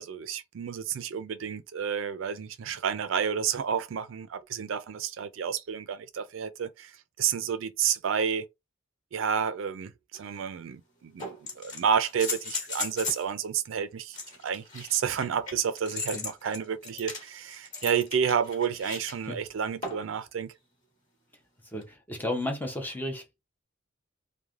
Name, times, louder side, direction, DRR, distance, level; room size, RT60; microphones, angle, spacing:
voice 1, 0.0-8.5 9.1-14.2 14.4-20.5, right 7 dB, 70° right, 0.4 m, -30 dB
sound 1, 10.1-10.2 11.2-13.3 14.1-19.1 19.8-20.2 21.8-21.9, left 3 dB, 40° left, 1.4 m, -37 dB
voice 2, 21.7-23.2, left 1 dB, 10° left, 0.6 m, -33 dB
3.1 x 2.1 x 2.4 m
head